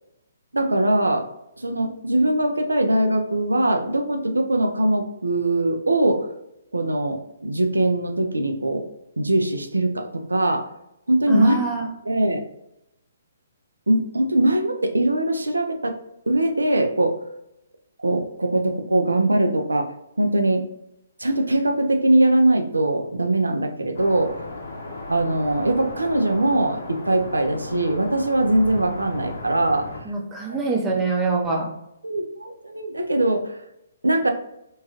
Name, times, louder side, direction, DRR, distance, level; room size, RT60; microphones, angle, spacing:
voice 1, 0.5-1.3 1.6-6.3 6.7-8.8 9.2-10.6 11.1-12.4 13.9-15.9 16.3-17.2 18.0-20.6 21.2-24.3 25.1-29.9 30.5-30.6 30.9-31.0 32.0-33.6 34.0-34.3, right 1 dB, 80° right, 4 dB, 0.4 m, -21 dB
voice 2, 11.3-11.9 30.1-31.7, right 4 dB, 15° right, -1 dB, 0.6 m, -25 dB
sound 1, 23.9-30.0, left 2 dB, 60° left, 0.7 m, -36 dB
3.0 x 2.2 x 2.8 m, 0.85 s
figure-of-eight pair, 130°, 0 cm